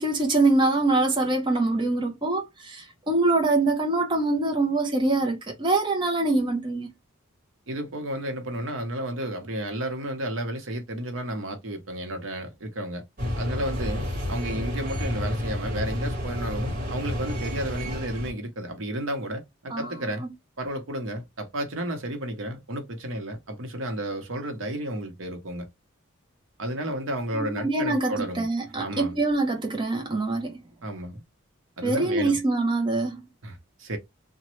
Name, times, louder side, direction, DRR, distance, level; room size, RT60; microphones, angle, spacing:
voice 1, 0.0-6.9 19.7-19.9 20.2-20.3 27.3-30.6 31.8-33.2, right 2 dB, 25° right, 0.6 m, -24 dB
voice 2, 7.7-13.0 13.4-20.3 20.6-25.7 26.6-28.5 28.7-29.2 30.8-31.2 31.8-32.4 33.4-34.0, right 1 dB, 80° right, 0.8 m, -32 dB
sound 1, 13.2-18.3, left 1 dB, 45° right, 1.2 m, -30 dB
3.0 x 2.2 x 3.0 m
head